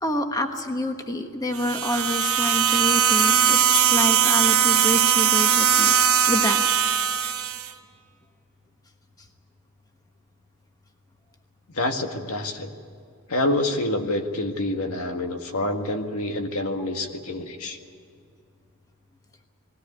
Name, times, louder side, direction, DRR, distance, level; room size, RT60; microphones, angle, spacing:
voice 1, 0.0-6.0 6.3-6.7, left 1 dB, 15° left, 5 dB, 1.2 m, -27 dB
sound 1, 1.5-7.7, right 7 dB, 75° right, 1.5 m, -20 dB
voice 2, 11.7-12.7 13.3-17.8, left 1 dB, 80° left, 5 dB, 1.8 m, -27 dB
20.0 x 17.0 x 9.4 m, 2.4 s
head